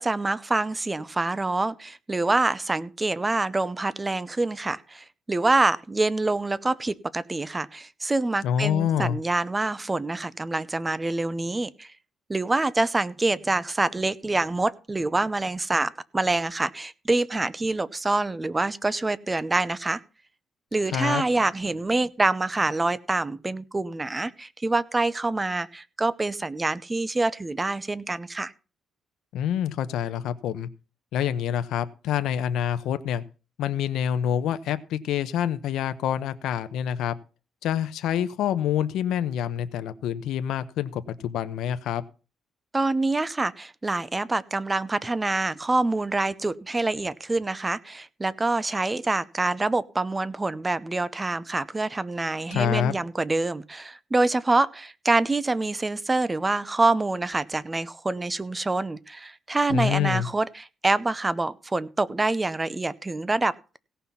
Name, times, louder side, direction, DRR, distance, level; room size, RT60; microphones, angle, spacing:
voice 1, 0.0-11.9 12.3-20.0 20.7-28.5 42.7-63.8, right 2 dB, 15° right, 18 dB, 0.6 m, -26 dB
voice 2, 8.4-9.2 20.9-21.2 29.3-30.7 31.1-33.2 33.6-37.1 37.6-42.0 52.5-53.0 59.7-60.3, left 9 dB, 85° left, 11 dB, 0.9 m, -26 dB
17.0 x 5.7 x 5.7 m, 0.34 s
cardioid pair, 130°, 0 cm